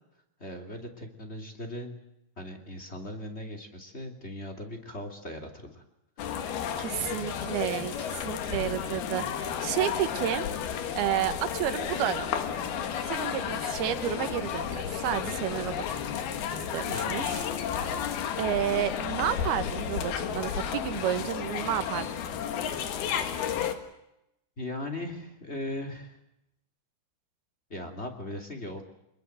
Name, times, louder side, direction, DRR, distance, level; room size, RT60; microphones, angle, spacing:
voice 1, 0.4-1.9 2.4-5.8 16.9-17.3 24.6-26.2 27.7-28.8, left 1 dB, 20° left, 3 dB, 2.6 m, -38 dB
sound 1, 6.2-23.7, left 8 dB, 75° left, 3.6 m, -32 dB
voice 2, 6.8-10.5 10.9-12.5 13.1-15.8 16.7-17.5 18.4-22.1, right 11 dB, 75° right, 11 dB, 3.2 m, -31 dB
26.0 x 21.0 x 7.9 m, 0.84 s
omnidirectional pair, 4.5 m